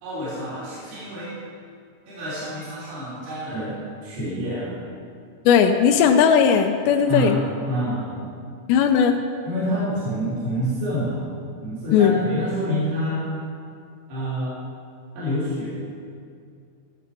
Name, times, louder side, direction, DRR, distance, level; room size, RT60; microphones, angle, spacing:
voice 1, 0.0-1.4 2.1-3.7 4.0-4.7 7.1-8.2 9.4-11.2 11.6-13.3 14.1-14.6 15.1-15.7, equal, 65° right, -9 dB, 5.4 m, -27 dB
voice 2, 5.5-7.4 8.7-9.2 11.9-12.2, left 7 dB, 85° left, 5 dB, 2.8 m, -17 dB
16.0 x 7.8 x 5.3 m, 2.3 s
omnidirectional pair, 5.0 m